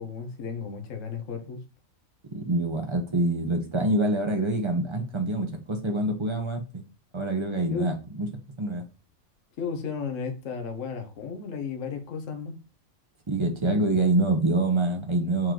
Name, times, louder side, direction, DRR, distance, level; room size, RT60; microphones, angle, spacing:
voice 1, 0.0-1.6 5.0-5.1 7.7-7.9 9.6-12.6, left 6 dB, 70° left, 5 dB, 1.3 m, -34 dB
voice 2, 2.3-6.8 7.1-8.3 8.6-8.8 13.3-15.5, right 2 dB, 30° right, 4 dB, 0.6 m, -26 dB
4.6 x 3.1 x 3.7 m, 0.33 s
omnidirectional pair, 1.4 m